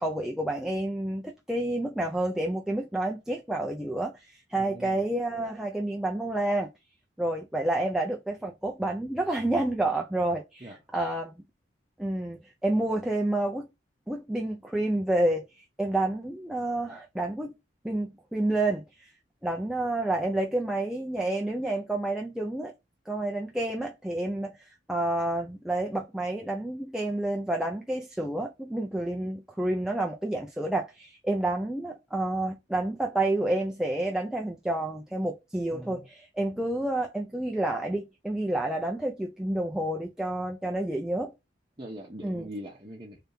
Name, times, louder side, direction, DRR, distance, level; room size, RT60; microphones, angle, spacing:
voice 1, 0.0-6.7 7.2-11.4 12.0-13.7 14.1-17.5 17.8-19.1 19.4-22.7 23.1-41.3 42.2-42.5, right 1 dB, 5° right, 0.5 m, -29 dB
voice 2, 4.5-5.0 10.6-10.8 35.7-36.0 41.8-43.2, equal, 25° right, 0.9 m, -42 dB
3.5 x 3.3 x 2.7 m
head